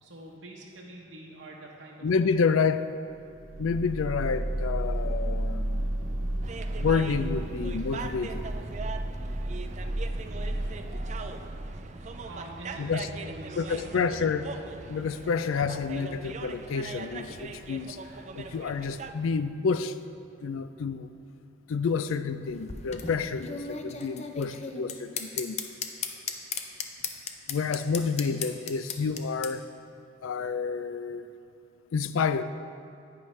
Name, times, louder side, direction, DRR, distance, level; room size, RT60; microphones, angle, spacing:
voice 1, 0.0-2.1 12.3-14.1, right 1 dB, 70° right, -3 dB, 0.9 m, -45 dB
voice 2, 2.0-2.9 3.6-5.9 6.8-8.4 12.8-13.1 13.6-14.5 14.9-18.0 18.3-19.9 20.4-21.1 21.7-25.6 27.5-29.6 30.2-31.2 31.9-32.4, left 5 dB, 85° left, 12 dB, 0.4 m, -29 dB
sound 1, 3.2-12.6, right 1 dB, 85° right, 1.2 m, -32 dB
sound 2, 6.4-19.1, right 4 dB, 35° right, 0.3 m, -41 dB
sound 3, 22.4-29.5, left 5 dB, 35° left, 0.5 m, -36 dB
10.0 x 9.2 x 3.2 m, 2.7 s
head